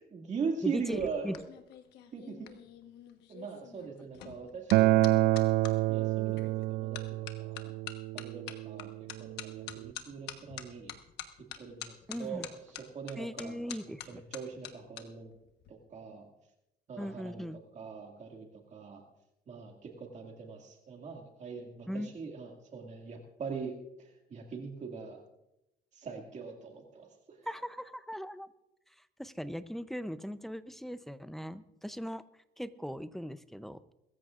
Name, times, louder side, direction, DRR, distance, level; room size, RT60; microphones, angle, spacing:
voice 1, 0.0-1.4 2.1-2.5 3.3-5.4 5.9-7.7 8.1-10.9 11.4-15.3 15.7-16.3 16.9-19.0 19.5-25.2 25.9-27.5, right 5 dB, 45° right, 2 dB, 2.2 m, -41 dB
voice 2, 0.6-1.4 12.1-12.5 13.2-14.2 17.0-17.6 21.9-22.1 27.5-28.5 29.2-32.2 32.6-33.8, equal, ahead, 13 dB, 0.6 m, -39 dB
sound 1, 0.7-5.7 6.4-6.6 6.9-15.0 15.3-15.7, left 11 dB, 85° left, 1.2 m, -46 dB
Acoustic guitar, 4.7-9.9, right 16 dB, 75° right, 0.4 m, -28 dB
22.0 x 14.0 x 2.5 m, 0.88 s
cardioid pair, 110°, 17 cm